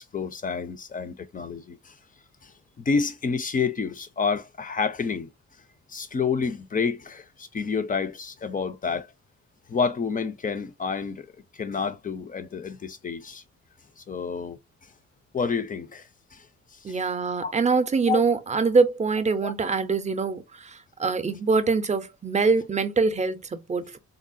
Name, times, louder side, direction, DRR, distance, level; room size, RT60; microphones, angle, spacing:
voice 1, 0.0-1.9 2.4-5.3 5.9-9.1 9.7-11.3 11.5-13.4 14.0-14.6 15.3-16.5 16.9-17.0 17.4-17.5 18.1-18.2 19.4-19.5, left 5 dB, 30° left, 0.5 m, -29 dB
voice 2, 16.8-24.0, right 4 dB, 25° right, 0.6 m, -24 dB
3.8 x 2.0 x 2.5 m
cardioid pair, 90°, 30 cm